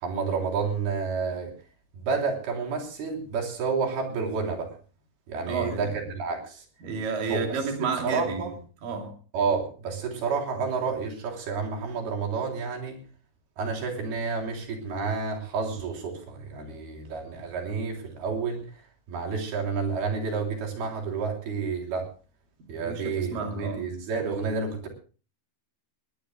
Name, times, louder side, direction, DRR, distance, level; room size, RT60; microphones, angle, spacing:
voice 1, 0.0-1.5 1.9-4.7 5.3-6.6 7.3-7.4 8.0-8.5 9.3-13.0 13.6-18.7 19.1-22.1 22.7-24.9, right 5 dB, 80° right, 5.4 m, -30 dB
voice 2, 5.5-5.9 6.8-8.4 8.8-9.1 22.8-23.8, right 4 dB, 60° right, 4.5 m, -31 dB
20.5 x 19.5 x 2.2 m
omnidirectional pair, 4.4 m